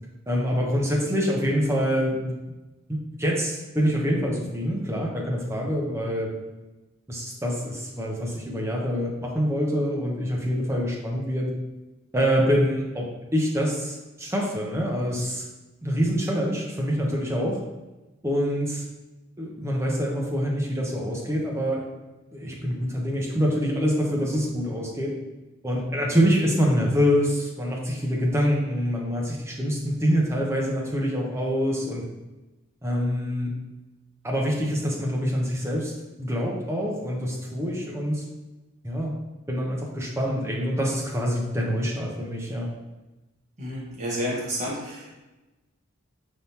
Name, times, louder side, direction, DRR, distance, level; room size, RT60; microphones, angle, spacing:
voice 1, 0.3-2.4 2.9-6.3 7.1-11.5 12.1-15.5 15.8-17.6 18.2-18.8 19.4-21.8 22.3-25.1 25.6-32.0 32.8-33.5 34.2-35.9 36.2-38.2 38.8-39.1 39.5-42.7, equal, 10° right, -2 dB, 0.6 m, -25 dB
voice 2, 43.6-45.2, equal, 35° right, -5 dB, 1.2 m, -30 dB
4.1 x 3.5 x 2.8 m, 1.1 s
head